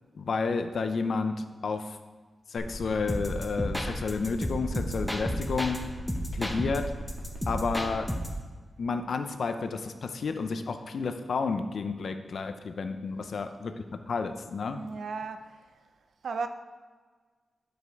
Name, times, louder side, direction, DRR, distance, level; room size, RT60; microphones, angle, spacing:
voice 1, 0.1-2.0 2.5-5.8 6.3-6.8 7.5-8.1 8.8-14.8, left 4 dB, 65° left, 0.6 m, -31 dB
sound 1, 2.6-8.0, equal, 40° right, 1.8 m, -40 dB
sound 2, 3.1-5.8 6.1-8.4, equal, 5° left, 0.9 m, -32 dB
voice 2, 14.7-15.9 16.2-16.5, right 4 dB, 75° right, 0.6 m, -36 dB
9.9 x 5.1 x 4.7 m
wide cardioid pair, 110°, 0 cm